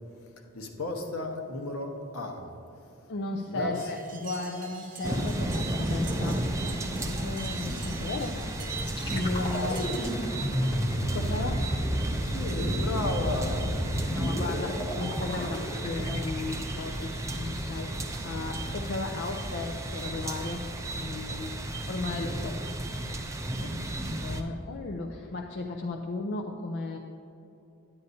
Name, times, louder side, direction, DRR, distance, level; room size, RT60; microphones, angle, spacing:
voice 1, 0.5-2.5 3.5-3.7 12.2-14.1, left 2 dB, 70° left, 1.0 m, -34 dB
voice 2, 3.1-6.4 6.9-8.4 8.8-10.0 11.1-11.6 14.1-20.7 20.9-21.6 21.9-22.6 23.1-23.3 23.6-27.0, left 2 dB, 50° left, 0.5 m, -35 dB
sound 1, 3.7-10.1, right 2 dB, 35° right, 0.8 m, -45 dB
sound 2, 5.0-24.4, right 1 dB, 15° right, 0.4 m, -33 dB
sound 3, 8.8-18.8, equal, 20° left, 1.1 m, -33 dB
9.8 x 9.5 x 2.7 m
head